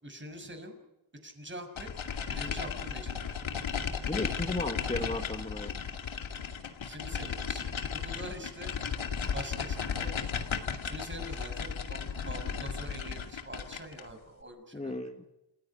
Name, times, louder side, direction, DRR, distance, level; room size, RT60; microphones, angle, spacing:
voice 1, 0.0-0.8 1.2-1.9 2.3-3.1 6.8-8.7 9.3-10.2 10.8-15.0, right 1 dB, 25° right, 6 dB, 6.4 m, -44 dB
sound 1, 1.8-14.1, left 6 dB, 85° left, 2.4 m, -35 dB
voice 2, 4.1-5.7 14.7-15.2, left 2 dB, 15° left, 5 dB, 1.6 m, -35 dB
29.0 x 15.5 x 9.9 m, 0.94 s
wide cardioid pair, 100°, 45 cm